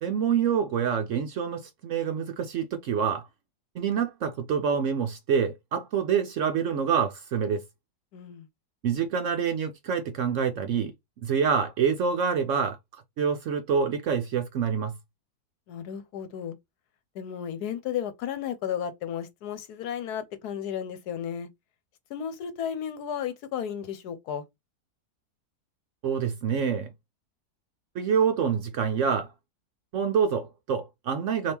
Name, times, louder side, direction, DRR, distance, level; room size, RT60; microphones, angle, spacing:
voice 1, 0.0-3.3 3.8-7.6 8.8-10.9 11.2-12.8 13.2-14.9 26.0-26.9 28.0-29.3 29.9-31.5, right 7 dB, 65° right, 0.8 m, -26 dB
voice 2, 8.1-8.5 15.7-16.5 17.1-21.5 22.1-24.4, left 9 dB, 75° left, 1.2 m, -33 dB
3.5 x 2.9 x 4.3 m
omnidirectional pair, 1.7 m